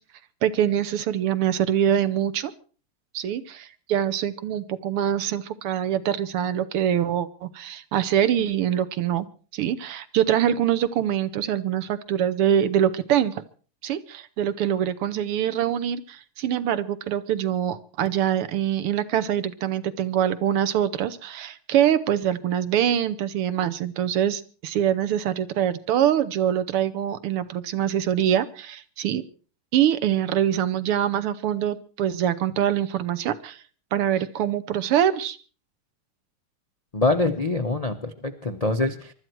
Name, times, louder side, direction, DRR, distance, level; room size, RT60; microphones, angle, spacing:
voice 1, 0.4-2.5 3.1-9.3 9.5-13.4 13.8-29.2 29.7-33.6 33.9-35.4, right 10 dB, 85° right, 12 dB, 1.9 m, -24 dB
voice 2, 36.9-39.1, left 2 dB, 85° left, 6 dB, 0.3 m, -24 dB
23.5 x 12.5 x 4.5 m, 0.39 s
omnidirectional pair, 2.4 m